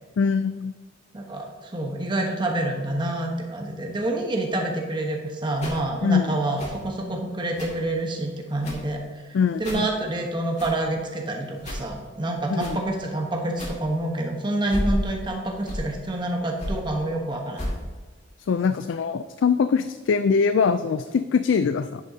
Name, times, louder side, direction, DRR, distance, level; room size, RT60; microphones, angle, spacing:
voice 1, 0.2-0.7 6.0-6.3 9.3-9.9 12.5-12.8 18.4-22.0, left 5 dB, 85° left, 11 dB, 0.4 m, -23 dB
voice 2, 1.1-9.2 9.6-17.6, right 1 dB, 25° right, 1 dB, 1.1 m, -27 dB
sound 1, 5.5-5.8 6.6-6.9 7.5-7.8 8.6-8.9 9.6-9.9 10.6-10.8 11.6-11.9 12.5-12.8 13.5-13.8 14.6-15.1 15.5-15.9 16.6-16.8 17.5-17.8, equal, 40° left, 2.3 m, -31 dB
10.5 x 8.8 x 2.8 m, 1.3 s
head